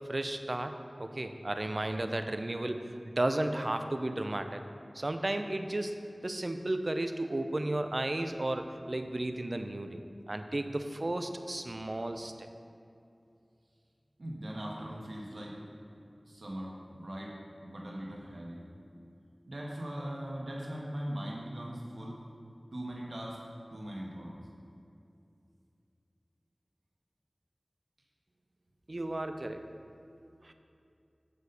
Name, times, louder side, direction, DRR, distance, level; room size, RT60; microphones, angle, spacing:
voice 1, 0.0-2.9 3.2-4.6 4.9-10.0 10.3-12.5 28.9-29.6 30.4-30.5, right 1 dB, 55° right, 7 dB, 0.5 m, -33 dB
voice 2, 14.2-15.6 16.2-18.6 19.5-22.2 22.7-23.4 23.7-24.3, equal, 85° right, -3 dB, 1.3 m, -40 dB
9.5 x 4.2 x 6.7 m, 2.6 s
wide cardioid pair, 40°, 0 cm